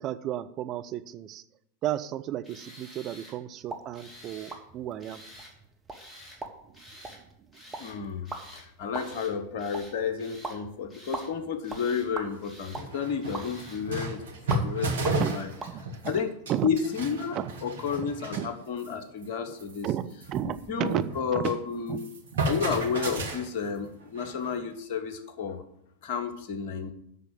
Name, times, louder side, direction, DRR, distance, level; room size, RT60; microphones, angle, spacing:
voice 1, 0.0-1.4 1.8-5.2 6.8-6.9 14.8-15.4 15.7-16.2 16.5-16.7 17.4-17.5 18.3-18.5 19.8-21.5 21.9-22.0 22.3-22.5, right 12 dB, 35° right, 10 dB, 0.6 m, -33 dB
Tools, 2.4-3.4 3.9-4.6 5.0-5.5 5.9-6.4 6.7-7.2 7.5-8.0 8.2-8.7 8.9-9.3 9.6-10.6 10.9-11.3 11.6-12.1 12.4-12.9 13.2-13.8, equal, 10° left, 2.6 m, -50 dB
sound 1, 3.6-15.8, right 3 dB, 15° right, 1.3 m, -43 dB
voice 2, 7.8-14.2 14.5-15.5 16.0-16.3 16.6-19.9 20.4-22.1 22.4-25.6 26.0-26.9, left 6 dB, 50° left, 8 dB, 1.2 m, -31 dB
sound 2, 12.4-12.5 12.7-16.2 16.5-18.5 18.8-19.0 19.2-19.3 19.6-21.6 21.9-24.6, right 2 dB, 65° right, 1.5 m, -33 dB
7.6 x 6.4 x 7.7 m, 0.74 s
figure-of-eight pair, 90°, 0 cm